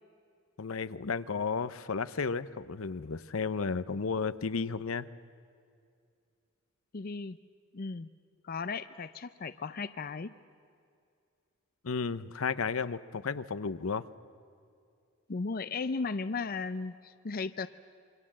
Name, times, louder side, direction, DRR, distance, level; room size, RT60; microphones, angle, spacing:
voice 1, 0.6-5.1 11.8-14.1, left 5 dB, 75° left, 14 dB, 0.7 m, -33 dB
voice 2, 6.9-7.4 7.7-8.1 8.4-10.3 15.3-17.7, left 4 dB, 45° left, 13 dB, 0.5 m, -36 dB
27.5 x 24.0 x 7.5 m, 2.4 s
head